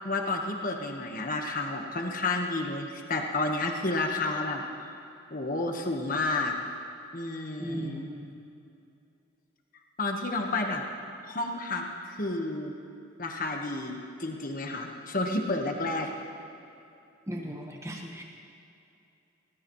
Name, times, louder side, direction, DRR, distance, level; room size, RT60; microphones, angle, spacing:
voice 1, 0.0-5.0 5.3-6.5 7.1-8.0 10.0-10.8 11.2-12.7 13.2-16.1, left 2 dB, 40° left, 2 dB, 1.4 m, -31 dB
voice 2, 7.6-8.4 17.3-18.2, right 1 dB, 15° right, 0 dB, 1.4 m, -37 dB
20.0 x 19.0 x 3.2 m, 2.7 s
head